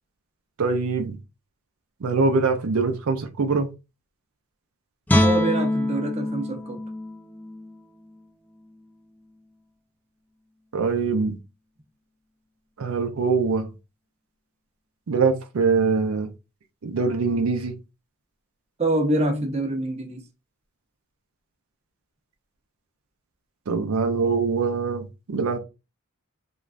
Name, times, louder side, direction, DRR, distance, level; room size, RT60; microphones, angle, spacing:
voice 1, 0.6-1.2 2.0-3.7 10.7-11.4 12.8-13.7 15.1-16.3 16.8-17.7 23.7-25.6, right 4 dB, 85° right, 0.5 m, -23 dB
Guitar, 5.1-8.2 8.6-8.8, left 1 dB, 10° left, 0.3 m, -25 dB
voice 2, 5.2-6.8 18.8-20.2, right 1 dB, 30° right, 0.7 m, -25 dB
3.1 x 2.3 x 2.4 m
head